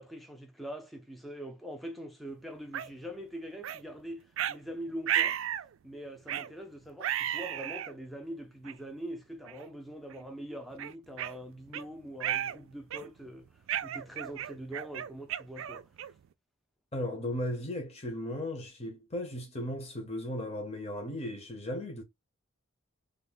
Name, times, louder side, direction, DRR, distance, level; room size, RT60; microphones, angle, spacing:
voice 1, 0.0-5.4 5.8-15.9, equal, ahead, 0.4 m, -43 dB
sound 1, 2.7-2.9 3.6-3.8 4.4-4.6 5.1-5.7 6.3-6.5 7.0-7.9 8.6-8.7 9.5-9.7 10.1-10.2 10.8-11.8 12.2-12.6 12.9-13.2 13.7-16.3, right 10 dB, 70° right, 0.3 m, -33 dB
voice 2, 16.9-22.0, left 1 dB, 30° left, 0.8 m, -36 dB
3.4 x 2.1 x 3.9 m
head